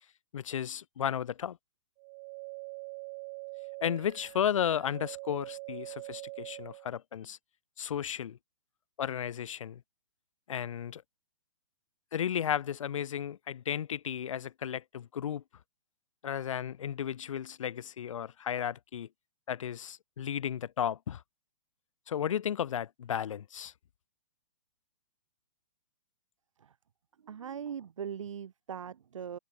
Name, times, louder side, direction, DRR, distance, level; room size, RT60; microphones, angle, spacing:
voice 1, 0.3-1.6 3.8-7.4 7.8-8.4 9.0-9.8 10.5-11.0 12.1-15.4 16.2-19.1 19.5-21.2 22.1-23.7, left 9 dB, 75° left, 0.7 m, -34 dB
sound 1, 2.0-6.9, right 33 dB, 35° right, 4.4 m, -44 dB
voice 2, 27.2-29.4, right 8 dB, 75° right, 5.8 m, -40 dB
hypercardioid pair, 145°, 16 cm